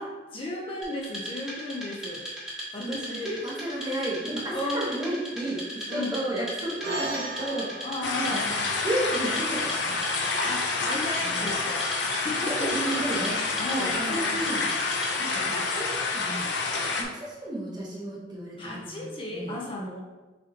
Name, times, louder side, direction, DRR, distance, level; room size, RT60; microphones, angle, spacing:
voice 1, 0.0-2.3 2.7-3.5 4.5-4.9 5.9-6.2 7.8-8.7 10.4-12.7 13.6-14.4 18.6-20.0, left 2 dB, 30° left, -2 dB, 0.5 m, -34 dB
Wood, 0.8-15.4, equal, 5° right, 1.2 m, -38 dB
voice 2, 2.8-7.9 8.2-8.4 8.8-9.9 11.2-11.5 12.4-13.4 13.7-14.6 15.0-16.5 16.9-18.7 18.9-19.6, right 1 dB, 25° right, -5 dB, 1.1 m, -33 dB
sound 1, 6.8-11.5, right 1 dB, 70° right, 0.9 m, -39 dB
sound 2, 8.0-17.0, left 3 dB, 75° left, 0.6 m, -28 dB
6.2 x 2.8 x 2.8 m, 1.2 s
head